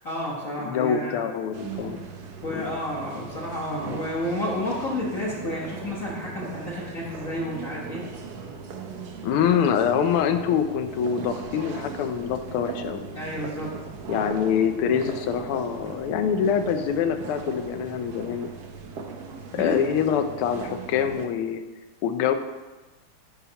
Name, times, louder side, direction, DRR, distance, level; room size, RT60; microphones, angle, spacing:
voice 1, 0.0-1.2 2.4-8.0 13.1-13.8 19.5-19.7, left 1 dB, 45° left, -6 dB, 1.3 m, -30 dB
voice 2, 0.6-2.0 2.5-2.7 9.2-13.0 14.1-18.5 19.6-21.6 22.0-22.3, left 8 dB, 80° left, 8 dB, 1.5 m, -25 dB
sound 1, 1.5-21.3, right 5 dB, 65° right, 1.0 m, -38 dB
9.7 x 5.6 x 2.8 m, 1.2 s
omnidirectional pair, 2.4 m